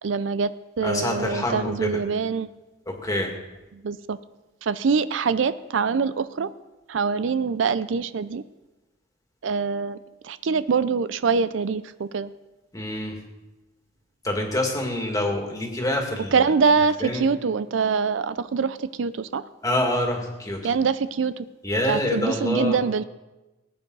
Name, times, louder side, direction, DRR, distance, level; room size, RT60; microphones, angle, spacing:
voice 1, 0.0-2.5 3.7-4.2 4.6-6.5 6.9-8.4 9.4-10.0 10.2-12.3 16.3-19.4 20.6-21.3 21.9-23.0, right 5 dB, 70° right, 14 dB, 0.5 m, -24 dB
voice 2, 0.8-1.9 2.9-3.3 12.7-13.2 14.2-16.5 17.0-17.2 19.6-20.6 21.6-22.8, left 1 dB, 20° left, 1 dB, 2.1 m, -26 dB
19.5 x 9.2 x 4.0 m, 1.1 s
head